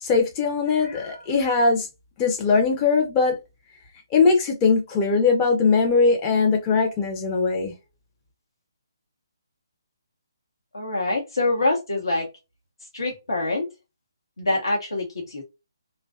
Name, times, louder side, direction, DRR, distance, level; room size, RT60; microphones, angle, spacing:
voice 1, 0.0-1.9 2.2-3.4 4.1-7.7, left 4 dB, 20° left, 0.4 m, -20 dB
voice 2, 10.7-12.3 12.9-13.7 14.4-15.4, left 2 dB, 80° left, 0.8 m, -25 dB
2.5 x 2.2 x 2.3 m
hypercardioid pair, 155°, 2 cm